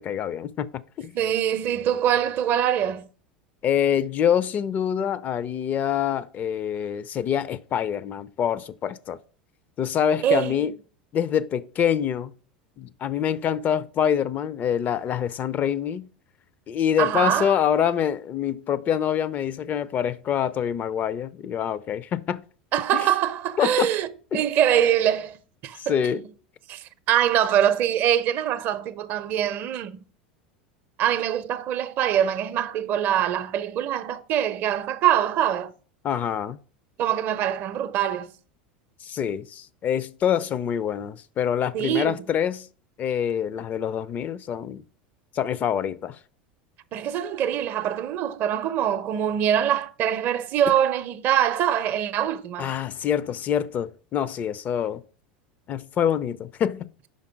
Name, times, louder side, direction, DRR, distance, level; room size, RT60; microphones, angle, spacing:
voice 1, 0.0-1.1 3.6-9.2 9.8-10.7 11.1-12.3 12.8-16.1 16.7-22.4 22.9-23.1 23.6-23.9 24.3-24.4 25.9-26.2 36.0-36.6 39.0-42.7 43.0-44.8 45.3-46.2 50.7-50.8 52.6-55.0 55.7-57.1, left 9 dB, 35° left, 0.4 m, -25 dB
voice 2, 1.1-3.1 10.2-10.5 17.0-17.5 22.7-25.9 26.7-30.0 31.0-35.7 37.0-38.3 41.7-42.2 46.9-52.7, right 10 dB, 45° right, 0.6 m, -24 dB
5.3 x 5.2 x 5.2 m
figure-of-eight pair, 80°, 5 cm